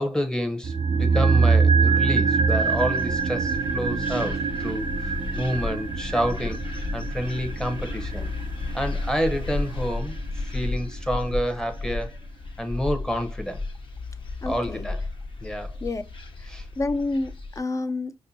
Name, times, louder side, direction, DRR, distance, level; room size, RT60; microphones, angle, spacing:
voice 1, 0.0-6.6 6.9-8.3 8.7-12.2 12.6-13.6 14.5-15.0 15.4-15.7 16.5-16.7, equal, 5° left, 0.8 m, -29 dB
sound 1, 0.6-10.9 11.1-11.2, right 5 dB, 55° right, 0.5 m, -24 dB
sound 2, 1.9-17.6, left 3 dB, 45° left, 1.0 m, -33 dB
voice 2, 14.4-14.9 15.8-16.0 16.4-16.5 16.8-18.1, left 2 dB, 25° left, 0.5 m, -28 dB
5.3 x 2.2 x 2.6 m
cardioid pair, 70°, 12 cm